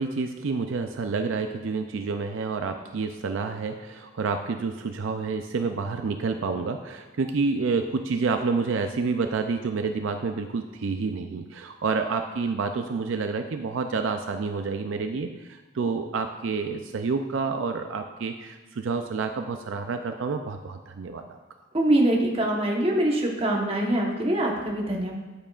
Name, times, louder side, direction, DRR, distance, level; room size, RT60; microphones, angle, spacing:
voice 1, 0.0-21.4, right 4 dB, 75° right, 6 dB, 0.4 m, -29 dB
voice 2, 21.7-25.2, right 1 dB, 30° right, -1 dB, 1.1 m, -24 dB
9.0 x 8.7 x 2.4 m, 1.2 s
head